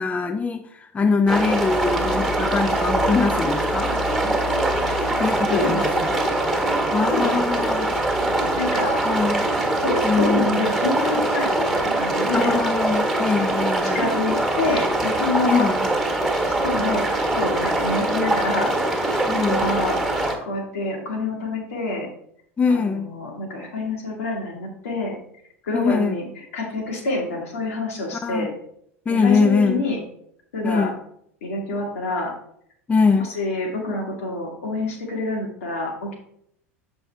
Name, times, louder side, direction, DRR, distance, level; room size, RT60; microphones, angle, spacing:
voice 1, 0.0-3.9 5.2-6.2 6.9-8.0 9.0-9.4 10.0-10.6 12.3-14.1 15.4-15.9 19.2-19.7 22.6-23.1 25.7-26.1 28.2-28.5 29.1-29.8 30.6-30.9 32.9-33.3, left 4 dB, 20° left, 7 dB, 0.5 m, -22 dB
sound 1, 1.3-20.4, right 1 dB, 5° right, 1.6 m, -23 dB
voice 2, 5.5-6.3 7.1-7.7 8.6-9.0 9.8-12.5 13.8-15.7 16.4-18.7 19.3-22.1 22.7-25.2 25.6-28.5 29.1-30.0 30.5-30.9 31.4-32.3 33.2-36.1, left 3 dB, 70° left, 0 dB, 2.0 m, -27 dB
7.1 x 5.4 x 3.3 m, 0.70 s
figure-of-eight pair, 75°, 8 cm